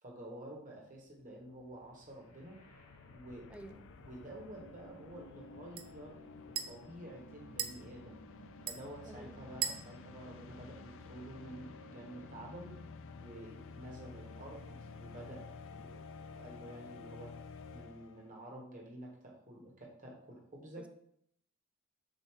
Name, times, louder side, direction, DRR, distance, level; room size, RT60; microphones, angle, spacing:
voice 1, 0.0-2.6 3.1-3.5 4.0-6.2 6.7-8.2 8.6-12.8 13.2-15.4 15.7-16.0 16.4-17.3 17.7-20.8, right 1 dB, 40° right, -1 dB, 1.5 m, -50 dB
sound 1, 1.0-18.4, left 4 dB, 65° left, 0.4 m, -52 dB
sound 2, 1.9-15.9, right 2 dB, 80° left, 1.3 m, -60 dB
voice 2, 3.5-3.9 9.1-9.4 20.8-20.9, right 1 dB, 5° right, 8 dB, 0.4 m, -51 dB
sound 3, 3.5-11.3, right 9 dB, 90° right, 0.5 m, -46 dB
6.9 x 2.9 x 4.7 m, 0.68 s
head